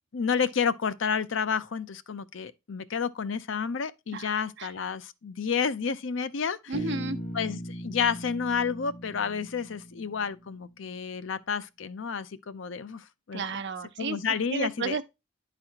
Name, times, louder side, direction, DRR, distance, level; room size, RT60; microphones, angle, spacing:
voice 1, 0.1-6.7 7.3-13.4 14.0-15.0, left 6 dB, 70° left, 0.5 m, -30 dB
Bass guitar, 6.7-10.8, equal, 45° left, 1.8 m, -39 dB
voice 2, 6.7-7.2 13.3-14.2 14.5-15.0, right 4 dB, 60° right, 0.8 m, -32 dB
10.5 x 4.1 x 2.8 m
head